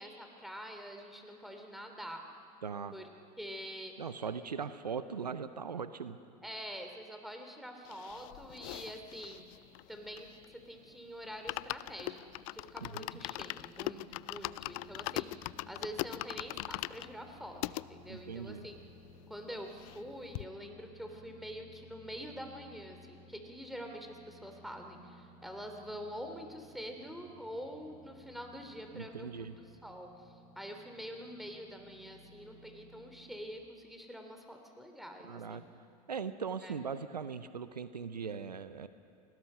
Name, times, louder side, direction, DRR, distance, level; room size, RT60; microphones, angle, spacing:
voice 1, 0.0-2.2 2.9-3.1 3.4-3.9 6.4-9.5 9.9-12.2 12.5-18.8 19.3-29.3 29.8-35.7 36.6-36.7, equal, ahead, 4 dB, 3.3 m, -46 dB
voice 2, 2.6-2.9 4.0-6.2 12.8-13.1 18.1-18.7 28.9-29.5 35.2-35.6 36.1-38.9, right 6 dB, 90° right, 13 dB, 0.7 m, -39 dB
sound 1, 7.8-10.6 11.0-11.1 11.3-17.8 18.4-18.5 18.7-18.8 19.1-20.1 20.3-20.5, left 21 dB, 55° left, 0.4 m, -41 dB
sound 2, 14.5-33.5, left 1 dB, 90° left, 3.5 m, -58 dB
28.5 x 20.0 x 5.8 m, 2.5 s
figure-of-eight pair, 75°, 20 cm